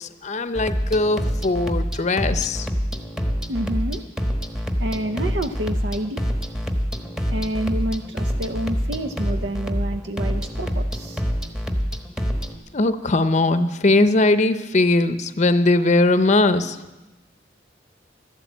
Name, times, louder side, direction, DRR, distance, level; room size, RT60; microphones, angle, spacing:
voice 1, 0.0-2.7 12.7-16.8, left 2 dB, 40° left, 11 dB, 0.7 m, -20 dB
sound 1, 0.6-12.6, equal, 5° right, 1.1 m, -26 dB
voice 2, 3.3-4.0 4.8-6.2 7.3-11.2, right 1 dB, 75° right, 7 dB, 0.7 m, -28 dB
13.0 x 12.0 x 8.2 m, 1.1 s
head